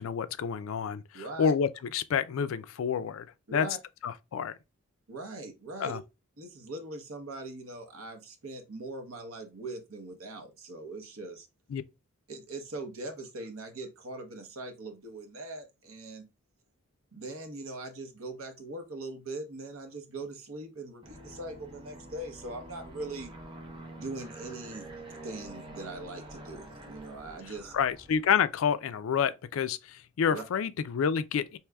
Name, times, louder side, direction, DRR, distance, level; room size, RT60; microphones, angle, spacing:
voice 1, 0.0-3.3 3.5-3.7 4.0-4.5 5.8-6.0 11.7-11.8 27.7-31.6, left 7 dB, 75° left, 0.3 m, -29 dB
voice 2, 1.1-1.5 3.5-3.8 5.1-6.0 6.4-11.5 12.3-16.3 17.1-23.3 23.9-24.9 25.2-27.7 30.3-30.4, right 2 dB, 80° right, 0.9 m, -41 dB
Aircraft, 21.0-28.4, right 1 dB, 20° right, 0.7 m, -47 dB
4.7 x 2.9 x 2.2 m
head